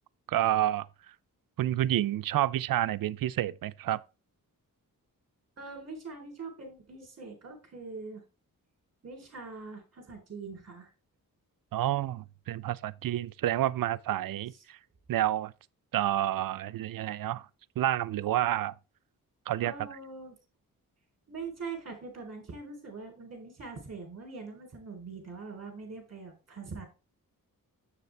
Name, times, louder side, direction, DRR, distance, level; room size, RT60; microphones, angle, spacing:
voice 1, 0.3-0.9 1.6-4.0 11.7-14.8 15.1-15.5 15.9-17.5 17.8-18.7 19.5-19.7, right 13 dB, 75° right, 0.5 m, -29 dB
voice 2, 5.6-8.2 9.0-10.9 19.6-20.4 21.3-26.8, right 4 dB, 45° right, 3.5 m, -43 dB
7.2 x 6.8 x 3.3 m
wide cardioid pair, 115°, 35 cm